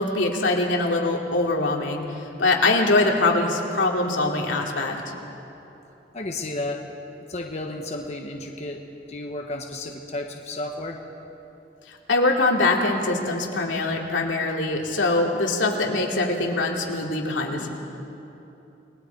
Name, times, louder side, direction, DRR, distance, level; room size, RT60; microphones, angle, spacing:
voice 1, 0.0-2.0 2.4-5.0 11.9-17.7, left 2 dB, 85° left, 0 dB, 2.7 m, -23 dB
voice 2, 6.1-6.8 7.3-8.8 9.1-11.0, left 2 dB, 35° left, 2 dB, 1.2 m, -32 dB
29.0 x 21.0 x 4.6 m, 2.9 s
head